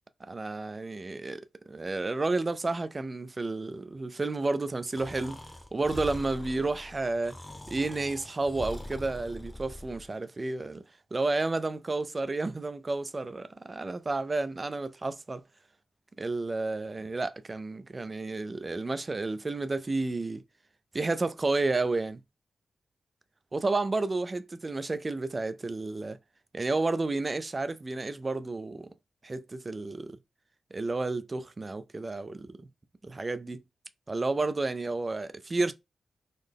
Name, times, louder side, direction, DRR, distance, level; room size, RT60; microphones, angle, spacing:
voice 1, 0.2-1.4 1.7-5.4 5.7-7.4 7.7-10.8 11.1-15.4 16.2-20.4 20.9-22.2 23.5-26.2 26.5-28.9 29.2-30.2 30.7-32.7 33.0-33.6 34.1-35.7, right 3 dB, 30° right, 0.4 m, -31 dB
Breathing, 4.9-10.1, left 1 dB, 15° left, 0.8 m, -43 dB
3.8 x 2.1 x 3.4 m
cardioid pair, 85°, 0 cm